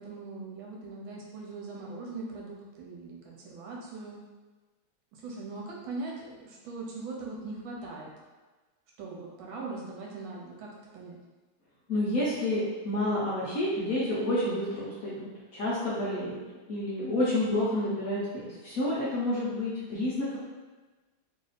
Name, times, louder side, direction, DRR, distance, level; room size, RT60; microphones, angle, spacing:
voice 1, 0.0-4.2 5.1-8.1 9.0-11.2, right 3 dB, 75° right, -2 dB, 1.5 m, -40 dB
voice 2, 11.9-16.4 16.7-18.2 18.6-20.4, left 1 dB, 55° left, -9 dB, 1.0 m, -29 dB
3.4 x 2.6 x 4.0 m, 1.2 s
omnidirectional pair, 2.3 m